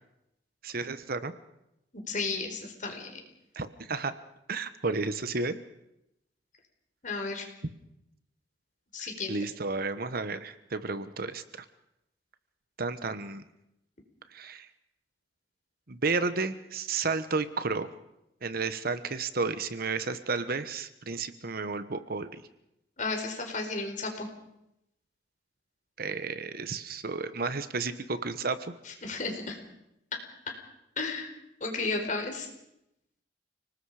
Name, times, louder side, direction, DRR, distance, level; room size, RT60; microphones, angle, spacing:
voice 1, 0.6-1.3 3.5-4.1 4.5-5.6 9.0-11.6 12.8-13.4 14.3-14.7 15.9-17.9 18.4-22.4 26.0-28.7, right 4 dB, 60° right, 12 dB, 1.2 m, -32 dB
voice 2, 2.1-3.2 7.0-7.5 8.9-9.3 23.0-24.3 28.8-29.6 30.5-30.6 31.0-31.3 31.6-32.5, left 3 dB, 45° left, 4 dB, 4.4 m, -33 dB
30.0 x 19.5 x 5.0 m, 0.84 s
head